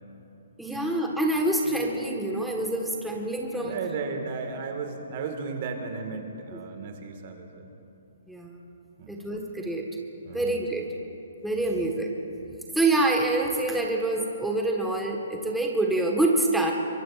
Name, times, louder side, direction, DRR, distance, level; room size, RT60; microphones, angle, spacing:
voice 1, 0.6-3.8 8.3-8.6 9.1-9.9 10.3-10.8 11.4-12.1 12.7-16.7, right 2 dB, 5° right, 0 dB, 1.4 m, -26 dB
voice 2, 3.6-7.7 9.0-9.3 10.2-10.8 11.6-11.8, right 5 dB, 50° right, 5 dB, 1.8 m, -35 dB
23.5 x 22.5 x 2.5 m, 2.9 s
hypercardioid pair, 135°, 0 cm